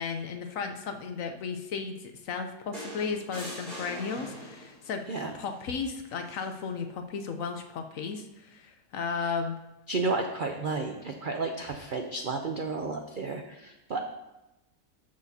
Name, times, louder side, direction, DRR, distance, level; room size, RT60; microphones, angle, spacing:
voice 1, 0.0-5.1 5.3-9.6, left 5 dB, 65° left, 6 dB, 1.0 m, -34 dB
sound 1, 2.7-4.9 6.3-6.5, equal, 30° right, 3.1 m, -42 dB
voice 2, 9.9-14.0, right 3 dB, 70° right, 4 dB, 0.4 m, -32 dB
12.5 x 6.6 x 2.8 m, 0.98 s
omnidirectional pair, 1.7 m